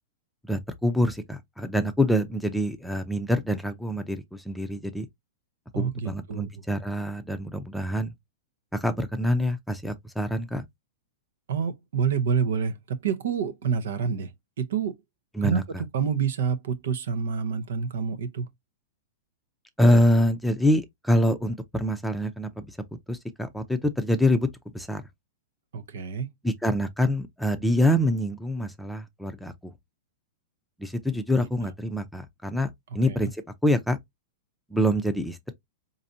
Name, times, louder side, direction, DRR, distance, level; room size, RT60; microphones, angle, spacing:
voice 1, 0.5-5.1 5.7-8.1 8.7-10.7 15.3-15.6 19.8-22.8 23.1-24.5 24.7-25.0 26.4-29.7 30.8-34.0 34.7-35.5, equal, ahead, 0.6 m, -25 dB
voice 2, 5.7-6.5 11.5-14.3 14.6-15.0 15.4-15.6 15.9-18.5 25.7-26.3 33.1-33.2, right 6 dB, 75° right, 0.7 m, -27 dB
4.1 x 2.6 x 2.6 m
hypercardioid pair, 125°, 0 cm